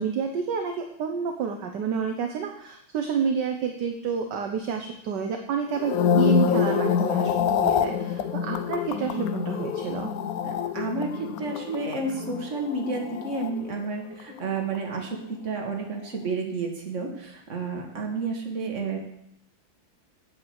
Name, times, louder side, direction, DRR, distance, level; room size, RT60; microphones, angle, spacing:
voice 1, 0.0-10.1, right 6 dB, 65° right, 4 dB, 1.3 m, -29 dB
sound 1, 5.7-14.1 14.4-14.8, left 7 dB, 75° left, 0.8 m, -26 dB
voice 2, 10.4-19.0, right 3 dB, 35° right, 1 dB, 1.9 m, -31 dB
8.3 x 5.8 x 8.1 m, 0.75 s
omnidirectional pair, 2.3 m